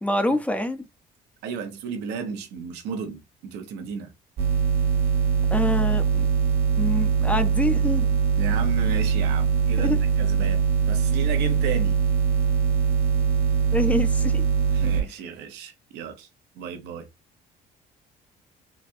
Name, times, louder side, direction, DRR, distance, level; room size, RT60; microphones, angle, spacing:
voice 1, 0.0-0.8 5.5-6.3 6.8-8.2 9.8-10.0 13.7-14.4, left 1 dB, 10° left, 0.5 m, -26 dB
voice 2, 1.4-4.1 8.4-12.0 14.7-16.3 16.6-17.1, right 6 dB, 90° right, 0.8 m, -33 dB
sound 1, 4.4-15.0, right 6 dB, 65° right, 1.4 m, -22 dB
4.1 x 2.3 x 2.6 m
cardioid pair, 110°, 17 cm